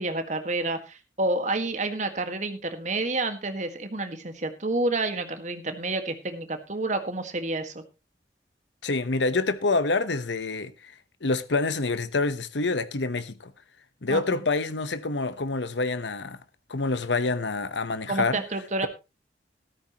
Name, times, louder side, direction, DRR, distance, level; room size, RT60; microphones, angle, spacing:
voice 1, 0.0-7.8 14.1-14.4 18.1-18.9, right 2 dB, 45° right, 1.7 m, -29 dB
voice 2, 8.8-10.7 11.2-13.5 14.0-16.4 16.7-18.4, left 3 dB, 85° left, 1.0 m, -27 dB
13.5 x 13.5 x 3.0 m
head